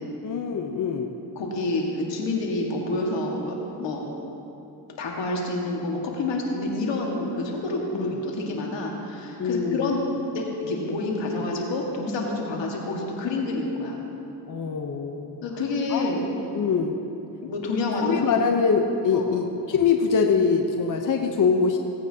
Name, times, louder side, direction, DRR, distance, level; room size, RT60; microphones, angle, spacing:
voice 1, 0.2-1.1 7.9-8.1 9.4-10.2 14.5-15.4 15.9-16.1 16.5-17.0 18.0-21.8, left 5 dB, 45° left, 3 dB, 0.8 m, -23 dB
voice 2, 1.4-4.1 5.0-10.0 10.3-14.0 15.4-16.3 17.4-18.3 19.1-19.2, left 2 dB, 80° left, -1 dB, 1.8 m, -28 dB
17.5 x 8.9 x 2.8 m, 2.9 s
cardioid pair, 70°, 43 cm